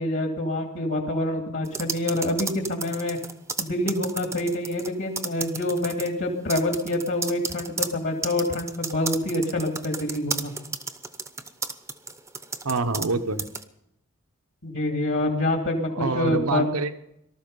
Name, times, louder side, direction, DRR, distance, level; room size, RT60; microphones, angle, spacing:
voice 1, 0.0-3.2 3.6-10.5 14.6-16.6, left 1 dB, 55° left, 2 dB, 2.6 m, -26 dB
sound 1, 1.7-4.9 5.2-6.1 6.5-13.1 13.4-13.6, right 4 dB, 15° right, 0.8 m, -32 dB
voice 2, 12.6-13.4 16.0-17.0, right 3 dB, 75° right, 9 dB, 1.0 m, -26 dB
19.0 x 13.0 x 5.5 m, 0.81 s
head